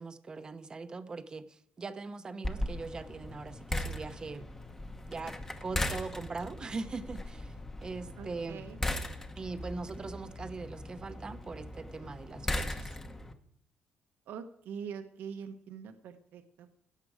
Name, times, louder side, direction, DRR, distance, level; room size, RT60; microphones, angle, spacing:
voice 1, 0.0-4.5 5.1-7.5 7.8-8.6 9.4-12.9, right 4 dB, 20° right, 10 dB, 0.8 m, -41 dB
sound 1, 2.4-13.3, left 1 dB, 10° left, 1.0 m, -38 dB
voice 2, 8.2-8.8 14.3-16.7, right 7 dB, 70° right, 7 dB, 1.0 m, -44 dB
16.5 x 7.6 x 4.9 m, 0.70 s
cardioid pair, 165°, 4 cm